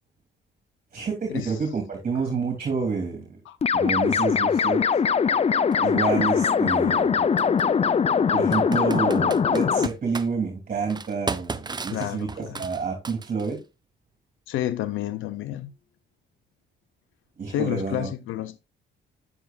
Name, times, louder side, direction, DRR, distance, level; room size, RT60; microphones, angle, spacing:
voice 1, 0.9-3.4 3.7-4.8 5.8-7.2 8.3-13.6 17.4-18.1, right 5 dB, 45° right, 2.9 m, -28 dB
sound 1, 3.6-9.9, left 6 dB, 30° left, 0.5 m, -21 dB
Computer keyboard, 5.7-5.8 7.4-7.6 8.5-10.3 10.9-13.6, right 4 dB, 20° right, 0.7 m, -34 dB
voice 2, 11.9-12.6 14.5-15.7 17.5-18.6, left 12 dB, 80° left, 0.7 m, -30 dB
9.9 x 8.1 x 2.4 m
cardioid pair, 90°, 20 cm